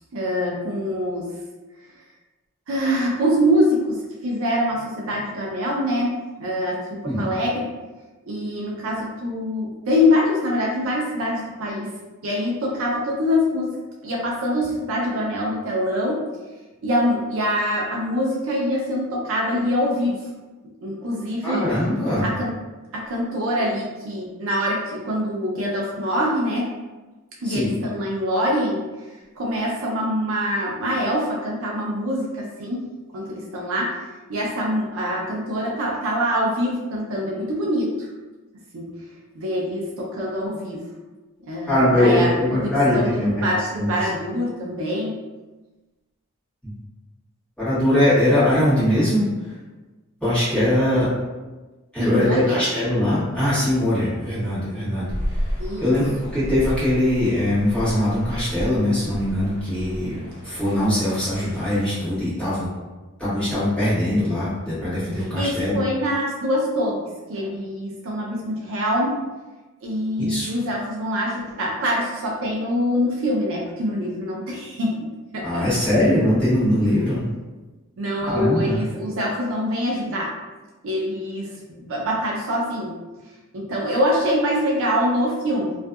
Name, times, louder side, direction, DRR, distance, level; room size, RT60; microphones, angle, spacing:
voice 1, 0.1-1.4 2.7-7.7 8.3-11.9 12.2-13.7 14.0-16.3 16.8-20.2 20.8-21.6 22.2-22.6 22.9-26.7 27.4-28.8 29.4-34.0 34.3-38.1 38.7-39.0 39.3-40.9 41.5-45.2 52.0-52.6 55.6-55.9 65.1-69.2 69.8-75.9 78.0-80.3 80.8-83.0 83.5-85.8, equal, 65° right, -3 dB, 0.5 m, -24 dB
voice 2, 21.4-22.3 27.4-27.7 41.7-43.9 47.6-49.2 50.2-51.1 51.9-55.1 55.8-60.2 60.4-62.7 63.2-65.8 70.2-70.5 75.4-77.2 78.3-78.8, left 1 dB, 5° left, -12 dB, 1.3 m, -21 dB
sound 1, 55.1-62.0, equal, 45° left, 1.1 m, -32 dB
2.6 x 2.4 x 2.3 m, 1.2 s
head